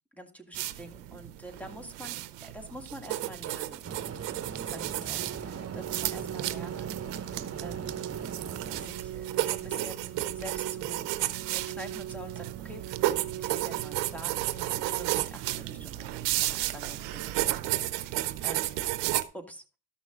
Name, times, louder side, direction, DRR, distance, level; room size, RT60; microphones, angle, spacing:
voice 1, 0.1-3.8 4.6-7.0 7.6-8.3 8.8-12.8 13.4-18.7 19.3-19.6, equal, 5° left, 5 dB, 2.0 m, -46 dB
sound 1, 0.5-19.2, right 16 dB, 90° right, 0.7 m, -33 dB
sound 2, 3.8-8.9, right 6 dB, 35° right, 1.1 m, -40 dB
Organ, 5.1-16.1, right 11 dB, 50° right, 0.4 m, -42 dB
13.5 x 6.1 x 3.6 m, 0.35 s
supercardioid pair, 65°, 41 cm